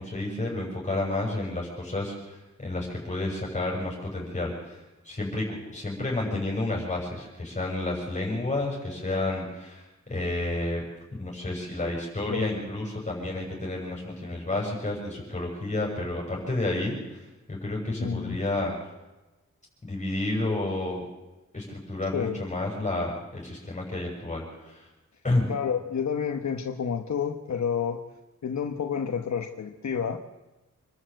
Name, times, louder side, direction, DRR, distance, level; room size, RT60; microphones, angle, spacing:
voice 1, 0.0-10.8 11.2-18.9 19.8-21.0 21.5-24.9 25.2-25.5, left 2 dB, 25° left, -2 dB, 7.0 m, -30 dB
voice 2, 18.0-18.4 22.1-22.4 25.5-28.1 28.4-30.2, left 7 dB, 70° left, 4 dB, 1.3 m, -29 dB
27.0 x 12.5 x 7.8 m, 1.1 s
wide cardioid pair, 110°, 29 cm